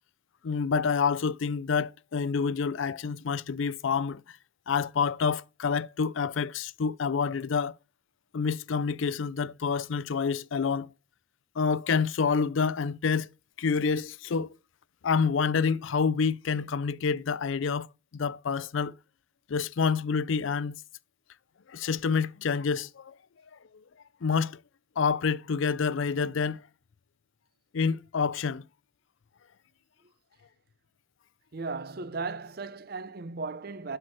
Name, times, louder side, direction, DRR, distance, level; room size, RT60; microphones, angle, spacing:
voice 1, 0.4-4.2 4.7-7.8 8.3-10.9 11.6-13.3 13.6-14.5 15.0-17.9 18.1-19.0 19.5-20.8 21.7-23.1 24.2-24.6 25.0-26.6 27.7-28.6, left 5 dB, 70° left, 0.4 m, -28 dB
voice 2, 31.5-34.0, right 4 dB, 50° right, 0.6 m, -36 dB
12.0 x 4.5 x 7.7 m
head